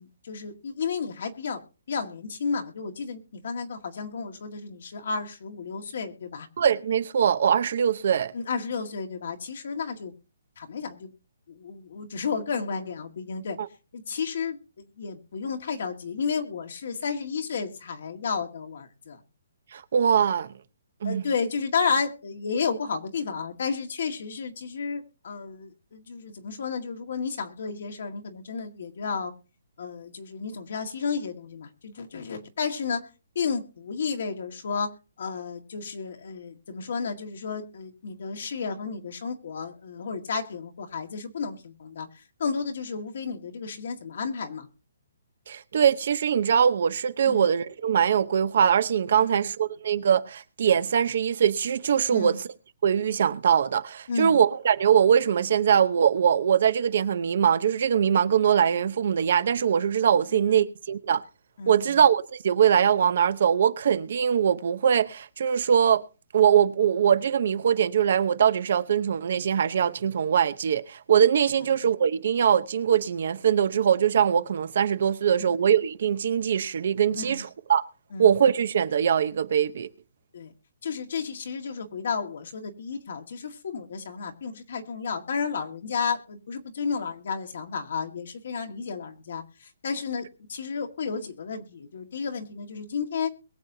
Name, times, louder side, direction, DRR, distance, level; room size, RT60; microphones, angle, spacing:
voice 1, 0.0-1.6 1.9-6.5 8.3-10.1 10.6-11.1 11.5-13.6 13.9-19.2 21.0-29.3 29.8-33.0 33.4-44.7 47.2-47.5 49.3-49.5 52.1-52.4 54.1-54.4 60.3-60.4 61.6-62.0 75.4-75.5 77.1-77.4 78.1-78.4 80.3-80.5 80.8-93.3, left 5 dB, 60° left, 1.9 m, -32 dB
voice 2, 6.6-8.3 19.7-20.5 21.0-21.2 45.5-52.4 52.8-61.2 61.7-66.0 66.3-77.8 78.2-79.9, right 8 dB, 50° right, 0.8 m, -22 dB
22.0 x 7.5 x 2.8 m
hypercardioid pair, 170°, 0 cm